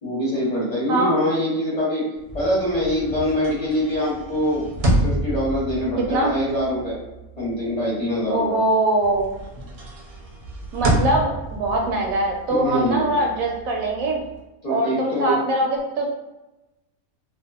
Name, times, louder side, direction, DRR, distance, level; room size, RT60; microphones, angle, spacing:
voice 1, 0.0-2.0 2.3-4.6 5.0-7.0 7.4-8.6 12.5-13.1 14.6-15.4, equal, 35° left, -8 dB, 0.9 m, -24 dB
sound 1, 2.2-8.7 9.0-14.4, right 1 dB, 60° right, 0.7 m, -29 dB
voice 2, 8.3-9.3 10.7-14.2 14.7-16.1, right 1 dB, 80° right, 1 dB, 1.0 m, -22 dB
2.6 x 2.2 x 2.3 m, 0.99 s
omnidirectional pair, 1.4 m